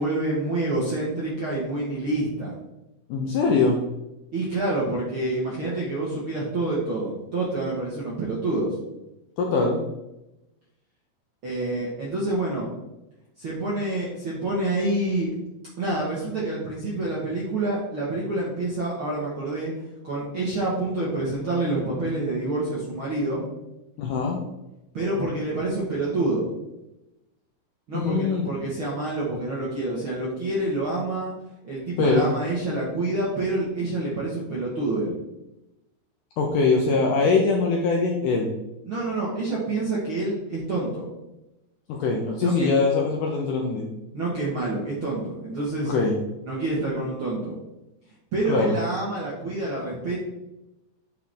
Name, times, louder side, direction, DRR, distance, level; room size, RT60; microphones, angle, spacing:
voice 1, 0.0-2.5 4.3-8.7 11.4-12.7 13.4-15.3 15.8-19.7 20.0-23.4 24.9-26.5 27.9-31.3 31.6-35.2 38.8-41.1 42.4-42.7 44.1-45.9 46.4-47.5 48.3-50.2, right 2 dB, 55° right, -6 dB, 1.4 m, -27 dB
voice 2, 3.1-3.8 9.4-9.8 24.0-24.4 27.9-28.5 32.0-32.3 36.4-38.5 41.9-43.8 45.8-46.2 48.5-48.8, left 4 dB, 75° left, 0 dB, 1.9 m, -22 dB
9.4 x 4.7 x 3.5 m, 0.93 s
omnidirectional pair, 4.5 m